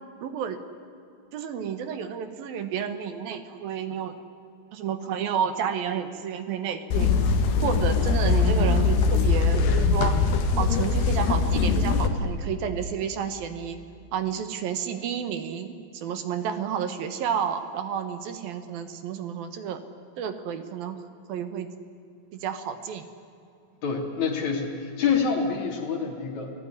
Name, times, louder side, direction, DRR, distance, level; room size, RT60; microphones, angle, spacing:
voice 1, 0.2-0.6 1.3-4.2 4.7-7.1 7.6-10.1 10.6-13.8 14.1-19.8 20.2-21.0 21.3-21.7 22.3-23.0, right 8 dB, 65° right, 10 dB, 2.8 m, -31 dB
sound 1, 6.9-12.1, left 4 dB, 70° left, 3.9 m, -22 dB
voice 2, 23.8-26.5, left 6 dB, 45° left, 3 dB, 3.7 m, -27 dB
28.0 x 19.0 x 9.7 m, 2.6 s
omnidirectional pair, 5.0 m